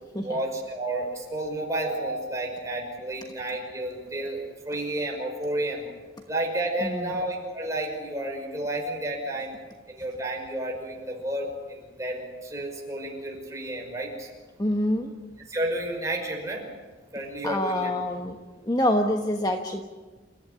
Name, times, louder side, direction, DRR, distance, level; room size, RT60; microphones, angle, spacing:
voice 1, 0.2-5.9 6.3-9.6 9.9-14.3 15.5-16.7 17.1-17.9, right 1 dB, 15° right, 0 dB, 5.7 m, -31 dB
voice 2, 14.6-15.1 17.4-18.4 18.6-19.8, left 1 dB, 20° left, 4 dB, 1.3 m, -26 dB
29.0 x 15.0 x 10.0 m, 1.3 s
head